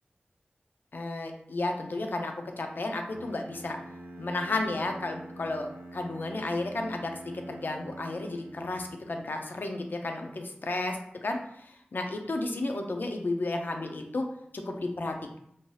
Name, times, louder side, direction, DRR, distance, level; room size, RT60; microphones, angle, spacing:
voice 1, 0.9-3.8 4.2-7.1 7.5-10.9 11.2-11.4 11.9-14.3 14.7-15.4, left 2 dB, 70° left, 4 dB, 0.4 m, -32 dB
Bowed string instrument, 3.1-9.0, right 1 dB, 85° right, 0.5 m, -46 dB
2.7 x 2.2 x 3.1 m, 0.72 s
wide cardioid pair, 60°, 4 cm